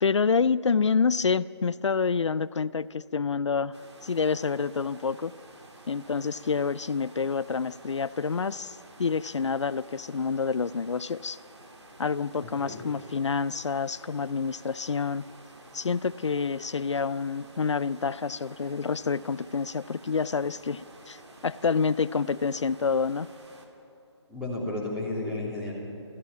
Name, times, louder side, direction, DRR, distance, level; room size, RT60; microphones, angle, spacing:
voice 1, 0.0-3.7 4.0-5.3 5.9-11.4 12.0-15.2 15.7-23.3, left 5 dB, 80° left, 17 dB, 0.5 m, -28 dB
sound 1, 3.7-23.7, right 2 dB, 70° right, 3.0 m, -51 dB
voice 2, 12.4-12.8 24.3-25.7, left 2 dB, 5° right, -5 dB, 3.3 m, -33 dB
21.0 x 14.5 x 9.4 m, 2.9 s
figure-of-eight pair, 155°, 15 cm